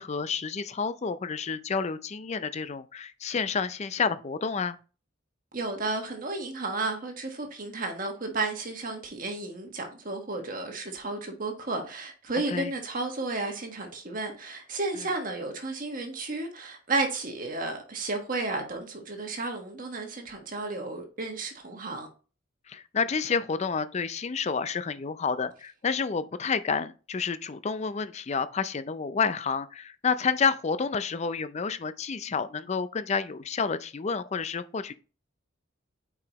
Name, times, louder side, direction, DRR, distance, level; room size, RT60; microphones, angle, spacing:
voice 1, 0.0-4.8 12.5-12.7 15.0-15.1 22.7-34.9, left 5 dB, 35° left, 0.4 m, -29 dB
voice 2, 5.5-22.1, right 3 dB, 45° right, 1.4 m, -33 dB
8.4 x 4.8 x 3.0 m
head